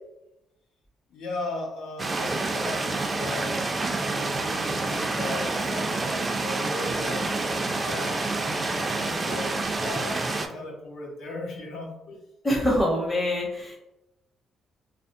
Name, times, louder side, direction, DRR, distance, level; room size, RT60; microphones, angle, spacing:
voice 1, 1.1-12.2, left 2 dB, 80° left, 0 dB, 0.7 m, -37 dB
sound 1, 2.0-10.5, right 3 dB, 30° right, 0.3 m, -28 dB
voice 2, 12.4-13.7, left 1 dB, 15° left, -5 dB, 0.6 m, -24 dB
2.6 x 2.0 x 2.4 m, 0.92 s
cardioid pair, 90°, 0 cm